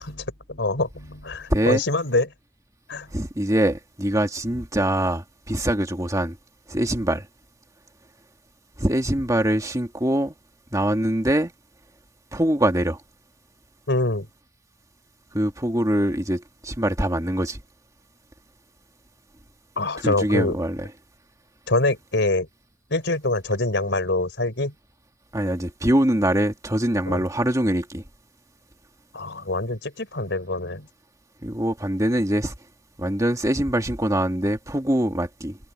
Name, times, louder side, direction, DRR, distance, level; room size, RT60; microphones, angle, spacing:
voice 1, 0.0-2.3 2.9-3.1 13.9-14.3 19.8-20.6 21.7-22.5 22.9-24.7 27.1-27.2 29.1-30.9, left 2 dB, 65° left, 4.7 m, -25 dB
voice 2, 1.5-1.8 3.1-6.4 6.7-7.3 8.8-10.3 10.7-11.5 12.3-13.0 15.3-17.6 20.0-20.8 25.3-28.0 31.4-32.5 33.0-35.6, right 1 dB, 15° right, 2.1 m, -23 dB
head